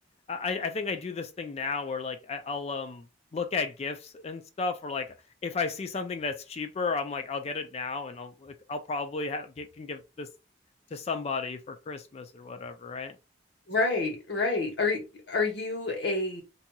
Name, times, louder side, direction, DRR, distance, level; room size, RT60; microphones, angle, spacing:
voice 1, 0.3-3.1 3.3-5.1 5.4-10.3 10.9-13.2, left 4 dB, 35° left, 0.4 m, -33 dB
voice 2, 13.7-16.4, left 3 dB, 70° left, 1.2 m, -28 dB
2.8 x 2.7 x 2.3 m
head